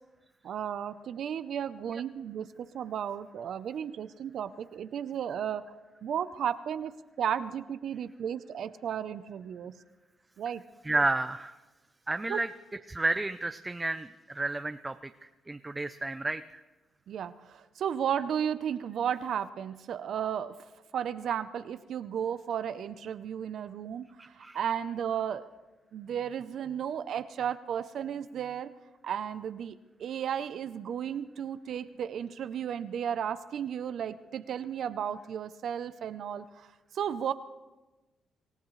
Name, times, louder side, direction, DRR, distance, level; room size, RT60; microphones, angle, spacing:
voice 1, 0.4-5.7 6.0-9.7 10.4-10.6 12.3-12.4 17.1-20.5 20.9-24.1 24.4-25.4 25.9-28.7 29.0-29.7 30.0-37.3, right 8 dB, 65° right, 12 dB, 0.7 m, -34 dB
voice 2, 10.8-11.6 12.1-12.5 12.9-16.6 24.2-24.6, right 2 dB, 15° right, 9 dB, 0.6 m, -32 dB
26.0 x 15.5 x 3.2 m, 1.1 s
cardioid pair, 90°, 0 cm